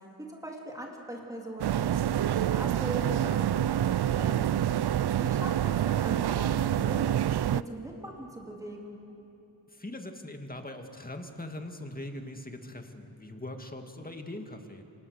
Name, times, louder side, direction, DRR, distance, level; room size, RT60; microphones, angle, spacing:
voice 1, 0.3-4.5 5.0-9.0, equal, 10° right, -1 dB, 3.4 m, -41 dB
sound 1, 1.6-7.6, right 11 dB, 70° right, 0.5 m, -27 dB
voice 2, 9.7-14.8, left 1 dB, 20° left, 5 dB, 2.2 m, -41 dB
27.5 x 25.5 x 6.7 m, 2.9 s
wide cardioid pair, 80°, 41 cm